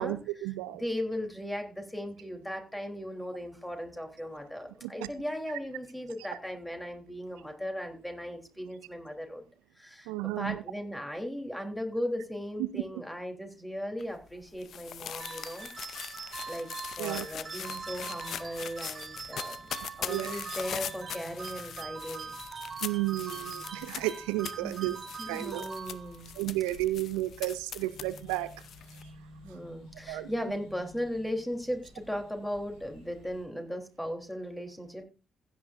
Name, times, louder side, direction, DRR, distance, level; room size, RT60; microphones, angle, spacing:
voice 1, 0.0-0.8 4.8-5.1 10.1-10.6 12.6-12.8 17.0-17.4 20.1-20.4 22.8-25.0 25.3-25.7 26.4-28.5 30.1-30.3, right 17 dB, 75° right, 0.5 m, -32 dB
voice 2, 0.8-9.4 9.8-15.7 16.5-22.4 24.6-26.3 29.4-35.1, equal, 5° left, 3.4 m, -37 dB
sound 1, 14.0-29.0, left 9 dB, 60° left, 0.6 m, -42 dB
sound 2, 15.2-26.4, right 5 dB, 45° right, 1.7 m, -42 dB
sound 3, 17.3-33.4, left 1 dB, 80° left, 7.1 m, -55 dB
16.0 x 9.9 x 2.6 m
hypercardioid pair, 45°, 0 cm